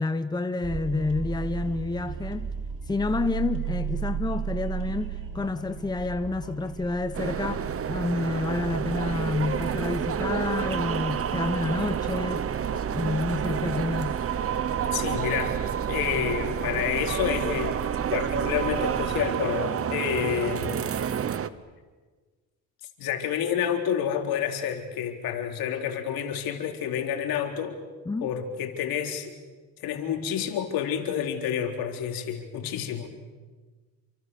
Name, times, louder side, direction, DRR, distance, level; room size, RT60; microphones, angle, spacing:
voice 1, 0.0-2.5 2.9-12.4 12.9-14.2 28.1-28.3, left 3 dB, 10° left, 1.0 m, -29 dB
sound 1, 0.6-19.2, right 7 dB, 55° right, 3.7 m, -36 dB
sound 2, 7.1-21.5, right 8 dB, 40° right, 1.1 m, -29 dB
voice 2, 14.9-15.6 15.9-17.8 18.1-20.9 23.0-27.8 28.2-29.3 29.8-33.1, left 9 dB, 70° left, 3.8 m, -29 dB
29.0 x 25.0 x 6.9 m
cardioid pair, 115°, 36 cm